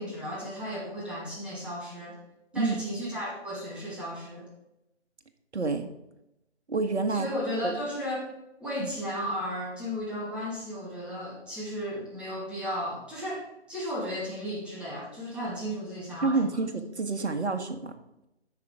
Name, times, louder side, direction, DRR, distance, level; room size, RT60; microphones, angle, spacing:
voice 1, 0.0-2.2 2.5-4.4 7.1-8.3 8.6-13.4 13.7-16.5, equal, 5° right, -7 dB, 2.4 m, -34 dB
voice 2, 5.5-5.9 6.7-7.3 7.6-7.7 8.8-8.9 16.2-17.9, right 4 dB, 70° right, 7 dB, 1.6 m, -28 dB
10.0 x 7.0 x 4.9 m, 0.88 s
figure-of-eight pair, 150°, 35 cm